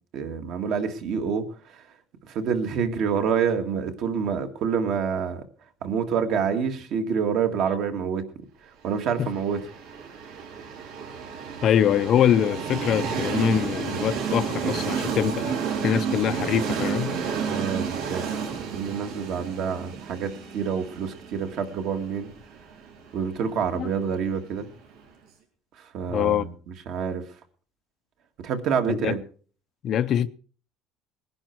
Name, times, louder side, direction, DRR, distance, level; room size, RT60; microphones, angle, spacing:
voice 1, 0.1-1.9 2.2-5.4 5.8-8.2 8.8-9.6 17.5-18.2 18.7-22.3 23.1-24.7 25.8-27.2 28.4-29.2, right 6 dB, 55° right, 2.0 m, -27 dB
Train, 9.1-25.0, right 6 dB, 75° right, 4.4 m, -31 dB
voice 2, 11.6-15.6 15.8-17.2 23.7-23.9 26.1-26.5 28.9-29.2 29.8-30.3, left 9 dB, 40° left, 0.6 m, -23 dB
20.0 x 11.0 x 4.6 m
cardioid pair, 160°, 0 cm